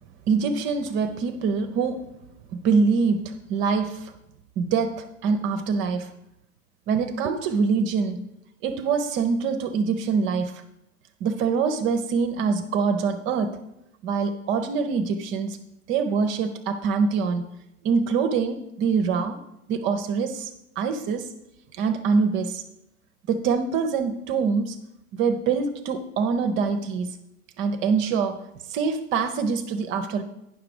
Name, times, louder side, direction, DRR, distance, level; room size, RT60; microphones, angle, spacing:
voice 1, 0.3-2.1 2.5-4.1 4.6-6.1 6.9-8.2 8.6-10.6 11.2-13.6 14.0-15.6 15.9-17.4 17.8-19.4 19.7-20.5 20.8-21.3 21.7-22.6 23.3-24.8 25.1-27.2 27.6-28.4 28.7-30.2, right 5 dB, 25° right, 8 dB, 0.6 m, -24 dB
10.0 x 5.8 x 4.9 m, 0.85 s
figure-of-eight pair, 95°, 44 cm